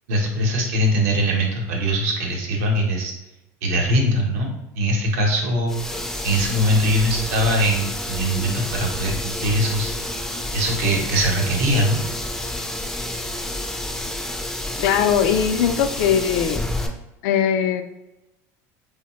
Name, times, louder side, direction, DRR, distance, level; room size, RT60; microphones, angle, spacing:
voice 1, 0.1-3.1 3.6-6.0 6.2-9.9 10.5-12.0, equal, 85° right, 1 dB, 0.8 m, -21 dB
sound 1, 5.7-16.9, left 1 dB, 5° left, 0.3 m, -29 dB
voice 2, 14.8-16.6 17.2-17.8, left 8 dB, 75° left, 8 dB, 0.3 m, -20 dB
3.0 x 2.0 x 2.9 m, 0.94 s
supercardioid pair, 125°, 8 cm